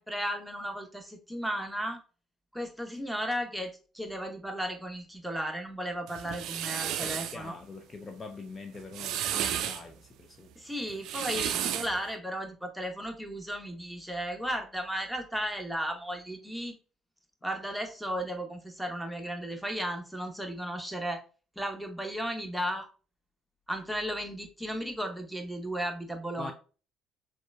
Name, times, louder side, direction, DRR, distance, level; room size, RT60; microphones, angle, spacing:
voice 1, 0.0-2.0 2.5-7.6 10.6-16.8 17.4-21.2 21.6-22.9 23.7-26.5, equal, ahead, 0.9 m, -35 dB
sound 1, 6.1-7.4 8.7-9.8 10.9-12.0, right 10 dB, 55° right, 0.3 m, -32 dB
voice 2, 7.0-10.5 26.4-26.5, left 4 dB, 30° left, 0.5 m, -44 dB
6.1 x 2.4 x 2.3 m
figure-of-eight pair, 50°, 0 cm